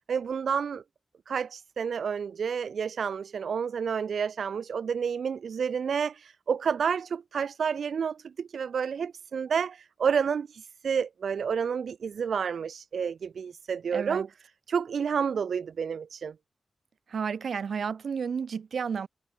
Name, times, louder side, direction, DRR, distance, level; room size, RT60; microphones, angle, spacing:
voice 1, 0.1-0.8 1.3-14.3 14.7-16.3, right 6 dB, 90° right, 0.4 m, -30 dB
voice 2, 13.9-14.3 17.1-19.1, right 6 dB, 70° right, 2.4 m, -31 dB
wide cardioid pair, 175°, 0 cm